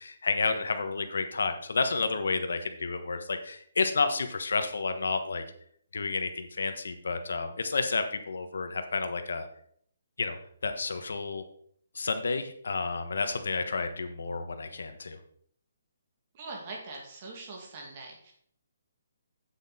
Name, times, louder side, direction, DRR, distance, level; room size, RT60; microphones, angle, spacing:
voice 1, 0.0-5.4 5.9-9.5 10.2-10.4 10.6-11.5 11.9-15.2, left 4 dB, 80° left, 8 dB, 1.3 m, -30 dB
voice 2, 16.3-18.3, right 3 dB, 30° right, 0 dB, 2.4 m, -42 dB
8.6 x 7.9 x 4.2 m, 0.63 s
hypercardioid pair, 175°, 0 cm